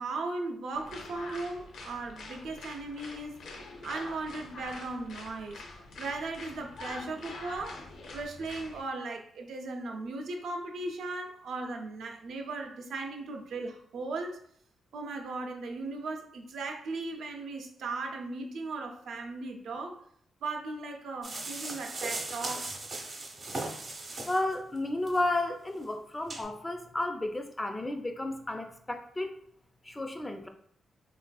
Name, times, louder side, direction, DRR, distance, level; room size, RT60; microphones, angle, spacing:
voice 1, 0.0-3.4 3.8-5.6 6.0-7.9 8.1-14.4 14.9-20.0 20.4-22.7, right 3 dB, 75° right, 3 dB, 0.5 m, -37 dB
sound 1, 0.7-8.8, left 3 dB, 80° left, 0.6 m, -45 dB
sound 2, 21.2-24.6 25.0-25.2 25.7-25.8 26.3-26.4, right 2 dB, 35° right, 0.7 m, -38 dB
voice 2, 24.3-29.3 29.8-30.5, left 2 dB, 20° left, 5 dB, 0.3 m, -32 dB
3.3 x 2.4 x 2.3 m, 0.65 s
cardioid pair, 85°, 0 cm